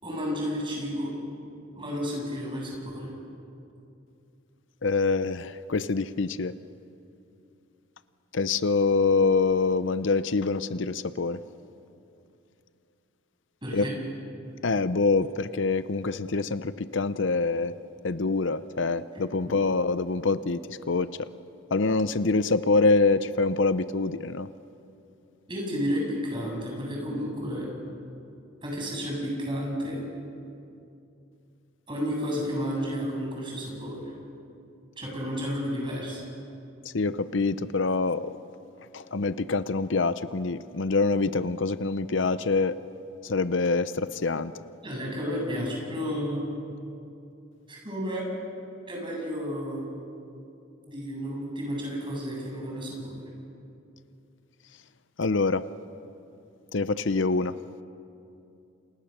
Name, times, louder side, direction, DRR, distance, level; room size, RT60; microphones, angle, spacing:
voice 1, 0.0-1.1 1.8-3.1 13.6-14.0 25.5-27.7 28.6-30.0 31.9-34.0 35.0-36.2 44.8-46.4 47.7-48.3 48.9-49.8 50.8-53.1, equal, 25° right, -1 dB, 7.5 m, -32 dB
voice 2, 4.8-6.5 8.3-11.4 13.7-13.9 14.6-17.8 18.0-20.6 20.9-21.1 21.7-24.5 36.9-38.4 38.9-42.8 43.2-44.5 55.2-55.6 56.7-57.5, left 3 dB, 65° left, 13 dB, 0.7 m, -25 dB
29.0 x 28.5 x 6.8 m, 2.6 s
head